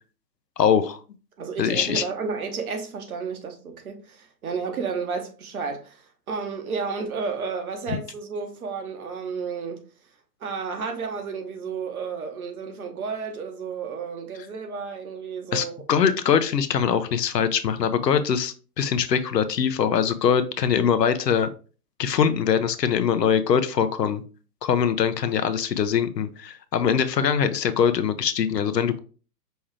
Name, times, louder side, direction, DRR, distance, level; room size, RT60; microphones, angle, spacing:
voice 1, 0.6-1.0 1.6-2.0 15.5-21.5 22.0-24.2 24.6-29.0, left 7 dB, 75° left, 0.7 m, -22 dB
voice 2, 1.4-9.8 10.4-15.8, right 5 dB, 55° right, 1.0 m, -32 dB
5.4 x 2.4 x 3.1 m
figure-of-eight pair, 120°, 50 cm